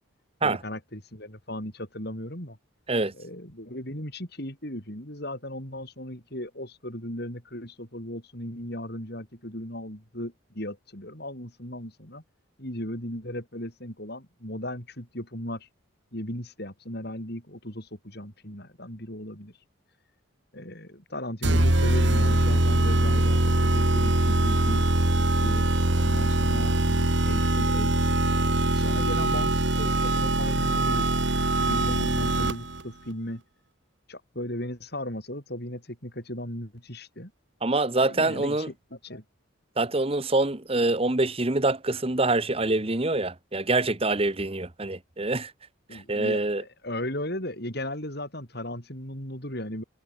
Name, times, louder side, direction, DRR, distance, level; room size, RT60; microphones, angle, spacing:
voice 1, 0.4-2.6 3.1-12.2 12.6-15.7 16.1-19.5 20.5-24.9 25.2-25.7 26.0-28.1 28.7-31.3 31.6-33.4 34.1-37.3 38.0-39.2 45.9-49.8, left 1 dB, 50° left, 7.5 m, -36 dB
sound 1, 21.4-32.8, right 1 dB, 60° right, 2.4 m, -23 dB
voice 2, 37.6-38.7 39.8-45.5 45.9-46.6, right 2 dB, 30° right, 1.2 m, -25 dB
head